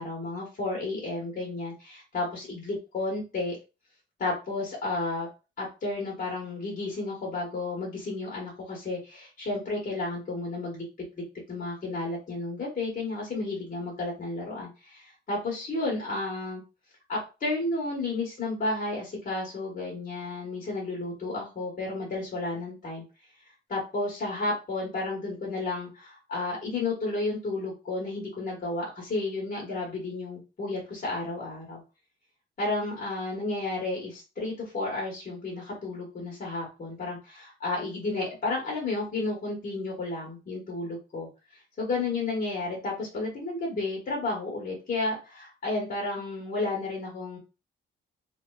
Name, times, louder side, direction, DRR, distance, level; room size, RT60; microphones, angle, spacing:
voice 1, 0.0-3.6 4.2-5.3 5.6-10.8 11.2-16.6 17.1-23.0 23.7-31.8 32.6-41.3 41.8-47.4, left 2 dB, 40° left, -3 dB, 1.2 m, -32 dB
2.9 x 2.2 x 2.2 m, 0.30 s
cardioid pair, 90°, 20 cm